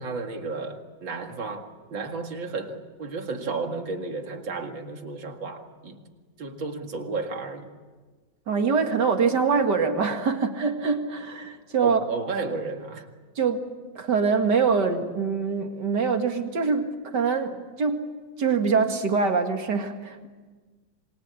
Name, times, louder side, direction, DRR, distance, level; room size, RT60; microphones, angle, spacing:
voice 1, 0.0-6.0 6.4-7.7 11.8-13.1, right 4 dB, 80° right, 4 dB, 2.8 m, -33 dB
voice 2, 8.5-12.0 13.4-13.6 14.0-18.0 18.4-20.3, right 5 dB, 60° right, 6 dB, 2.5 m, -24 dB
26.5 x 23.0 x 8.4 m, 1.4 s
omnidirectional pair, 2.1 m